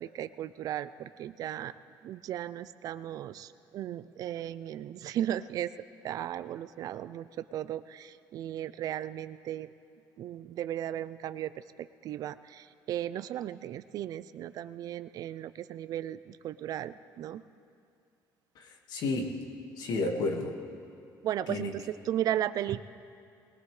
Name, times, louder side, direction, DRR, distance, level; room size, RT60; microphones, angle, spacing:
voice 1, 0.0-1.7 2.0-5.7 6.0-9.7 10.2-11.5 11.8-17.4 21.2-22.8, right 11 dB, 55° right, 14 dB, 0.4 m, -36 dB
voice 2, 18.5-19.5 19.8-20.6 21.5-21.8, left 2 dB, 65° left, 3 dB, 1.8 m, -32 dB
21.5 x 19.5 x 3.3 m, 2.4 s
cardioid pair, 140°, 8 cm